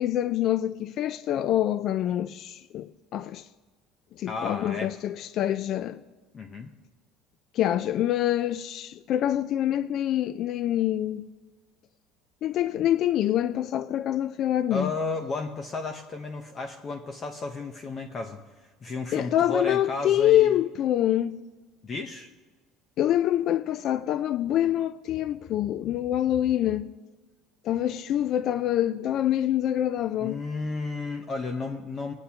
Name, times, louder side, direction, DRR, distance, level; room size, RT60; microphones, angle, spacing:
voice 1, 0.0-3.5 4.2-6.0 7.5-11.3 12.4-14.9 19.1-21.3 23.0-26.9 27.6-30.4, left 12 dB, 50° left, 0.4 m, -25 dB
voice 2, 4.3-4.9 6.3-6.7 14.7-18.4 18.8-20.6 21.8-22.3 30.2-32.1, left 3 dB, 30° left, 0.8 m, -33 dB
22.5 x 9.7 x 2.9 m
cardioid pair, 130°, 0 cm